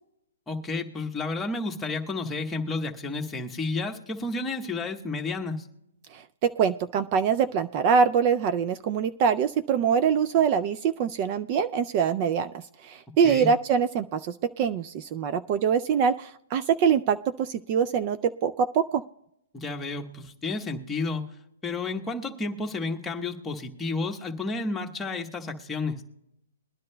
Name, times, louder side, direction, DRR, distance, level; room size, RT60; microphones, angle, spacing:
voice 1, 0.5-5.7 13.2-13.5 19.5-21.2 21.6-26.0, left 3 dB, 10° left, 2 dB, 1.1 m, -31 dB
voice 2, 6.1-19.0, right 7 dB, 30° right, 11 dB, 0.3 m, -24 dB
22.0 x 10.5 x 2.2 m, 0.85 s
hypercardioid pair, 155°, 0 cm